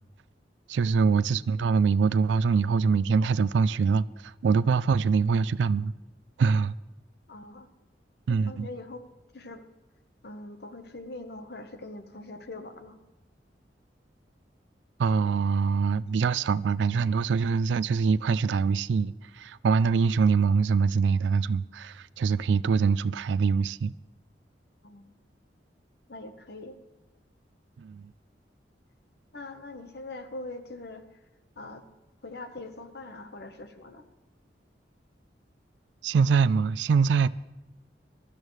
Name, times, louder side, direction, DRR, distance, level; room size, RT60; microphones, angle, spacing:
voice 1, 0.7-5.9 6.4-6.7 8.3-8.7 15.0-23.9 27.8-28.1 36.0-37.3, right 5 dB, 85° right, 0.3 m, -24 dB
voice 2, 7.3-7.7 8.3-9.0 9.3-9.6 10.2-13.0 24.8-25.1 26.1-26.8 29.3-31.0 31.6-31.8 32.2-34.0, left 2 dB, 65° left, 1.1 m, -42 dB
22.0 x 12.5 x 3.2 m
head